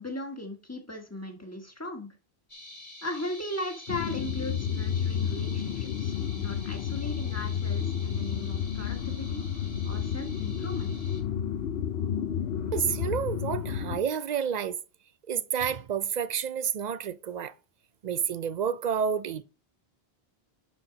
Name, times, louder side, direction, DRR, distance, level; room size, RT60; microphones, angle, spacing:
voice 1, 0.0-2.1 3.0-9.4 9.8-10.9, left 1 dB, 15° left, 1.4 m, -38 dB
sound 1, 2.5-11.2, left 1 dB, 35° left, 2.1 m, -48 dB
sound 2, 3.9-14.0, left 8 dB, 70° left, 0.8 m, -31 dB
voice 2, 12.7-14.8 15.3-17.5 18.0-19.4, right 7 dB, 55° right, 0.5 m, -29 dB
11.0 x 4.4 x 3.9 m
omnidirectional pair, 1.1 m